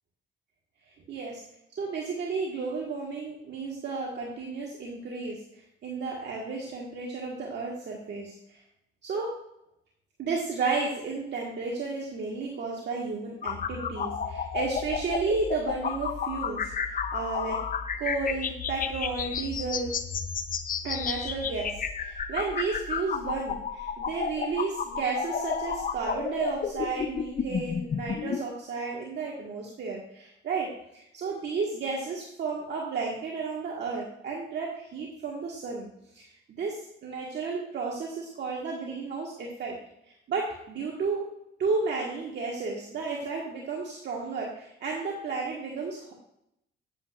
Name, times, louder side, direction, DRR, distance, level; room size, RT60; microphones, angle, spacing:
voice 1, 1.7-5.4 5.8-8.3 9.0-9.3 10.2-17.6 18.0-19.9 20.8-35.9 36.1-39.7 40.3-41.3 41.6-46.1, right 4 dB, 60° right, -2 dB, 1.6 m, -32 dB
sound 1, 13.4-28.4, left 6 dB, 45° left, 0.7 m, -32 dB
9.8 x 8.7 x 2.5 m, 0.79 s
cardioid pair, 90°, 20 cm